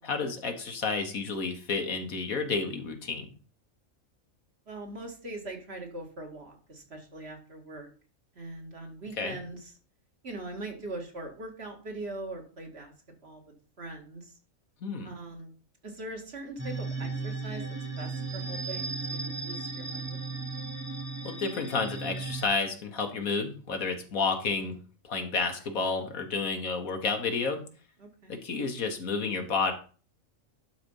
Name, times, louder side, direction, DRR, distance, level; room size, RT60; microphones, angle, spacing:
voice 1, 0.0-3.3 9.2-9.4 14.8-15.1 21.2-24.8 25.0-27.6 28.3-29.7, left 4 dB, 85° left, 5 dB, 1.9 m, -30 dB
voice 2, 4.7-7.9 8.4-9.7 10.2-12.9 13.2-14.3 15.0-15.5 15.8-17.6 18.0-20.2 28.0-28.4, right 2 dB, 50° right, 2 dB, 2.2 m, -41 dB
sound 1, 16.6-22.4, right 3 dB, 10° right, 1.3 m, -35 dB
11.5 x 4.2 x 5.5 m, 0.39 s
omnidirectional pair, 1.4 m